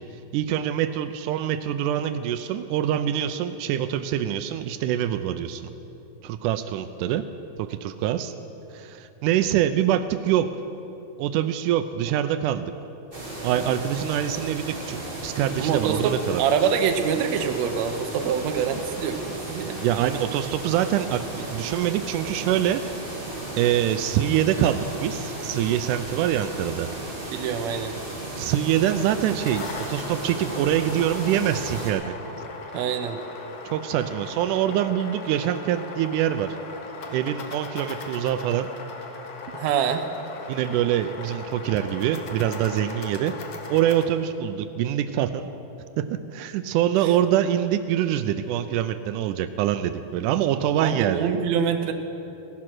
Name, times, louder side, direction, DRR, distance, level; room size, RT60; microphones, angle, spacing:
voice 1, 0.3-5.7 6.2-7.2 7.6-8.3 8.7-10.5 11.2-12.7 13.4-16.4 19.8-22.8 23.6-26.9 28.3-32.1 33.7-36.6 37.1-38.7 40.5-43.3 43.7-45.5 46.0-46.1 46.3-51.3, right 11 dB, 85° right, 10 dB, 2.1 m, -24 dB
sound 1, 13.1-31.9, right 1 dB, 20° right, 2.3 m, -35 dB
voice 2, 15.6-19.9 27.3-27.9 32.7-33.2 39.5-40.1 50.8-51.9, right 7 dB, 70° right, 6 dB, 1.9 m, -25 dB
sound 2, 29.2-44.0, left 4 dB, 60° left, 1.8 m, -38 dB
16.5 x 11.0 x 6.0 m, 2.9 s
omnidirectional pair, 3.6 m